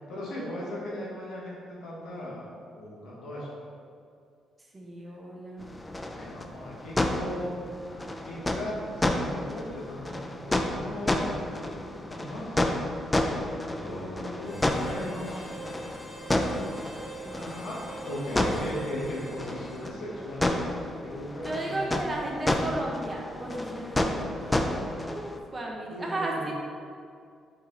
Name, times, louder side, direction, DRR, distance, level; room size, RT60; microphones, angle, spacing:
voice 1, 0.0-2.5 2.8-3.5 6.1-12.6 13.6-15.5 17.3-17.8 18.0-20.5 21.0-21.8 24.4-24.9 25.9-26.5, left 1 dB, 75° left, -5 dB, 1.1 m, -38 dB
voice 2, 4.6-5.7 17.2-17.8 21.4-24.5 25.0-26.5, right 1 dB, 30° right, -1 dB, 0.7 m, -34 dB
sound 1, 5.6-25.4, left 1 dB, 15° left, 0.4 m, -31 dB
Harmonica, 14.4-20.4, right 1 dB, 5° right, 1.4 m, -44 dB
4.7 x 2.7 x 3.7 m, 2.3 s
cardioid pair, 90°, 0 cm